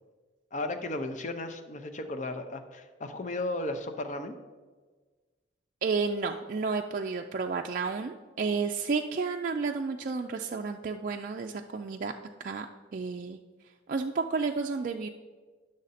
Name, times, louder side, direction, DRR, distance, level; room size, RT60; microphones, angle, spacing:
voice 1, 0.5-4.4, left 2 dB, 40° left, 8 dB, 0.6 m, -35 dB
voice 2, 5.8-12.1 12.4-12.7 12.9-13.4 13.9-15.1, right 4 dB, 45° right, 3 dB, 0.3 m, -31 dB
10.5 x 6.5 x 4.1 m, 1.4 s
head